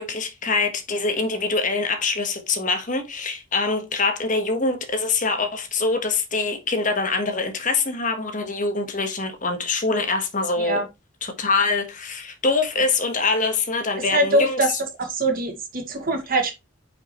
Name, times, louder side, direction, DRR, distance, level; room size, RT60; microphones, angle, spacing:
voice 1, 0.0-10.8 11.2-14.8, left 3 dB, 40° left, 1.4 m, -24 dB
voice 2, 14.1-14.7 15.0-16.5, right 2 dB, 45° right, 2.1 m, -22 dB
9.6 x 5.4 x 3.1 m
head